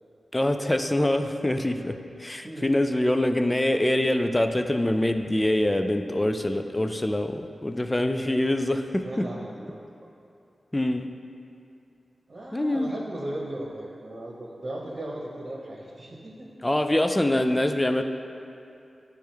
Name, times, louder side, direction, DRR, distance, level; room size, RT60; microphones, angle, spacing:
voice 1, 0.3-9.3 10.7-11.1 12.5-12.9 16.6-18.0, left 1 dB, 20° left, 7 dB, 0.4 m, -24 dB
voice 2, 9.0-9.8 12.3-16.5, right 1 dB, 50° right, -4 dB, 0.9 m, -37 dB
10.0 x 3.5 x 3.3 m, 2.7 s
cardioid pair, 55°, 0 cm